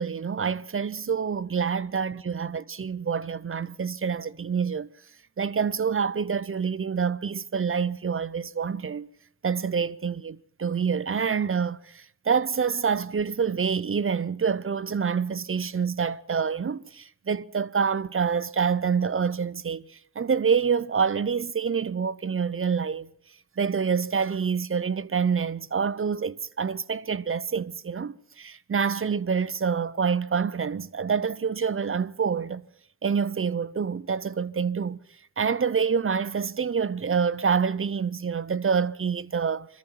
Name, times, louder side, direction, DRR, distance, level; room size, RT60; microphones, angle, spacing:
voice 1, 0.0-4.9 5.4-9.1 9.4-11.8 12.3-19.8 20.2-23.1 23.6-32.6 33.0-35.0 35.4-39.7, right 6 dB, 35° right, 0.6 m, -27 dB
22.0 x 13.5 x 4.5 m
cardioid pair, 55°, 39 cm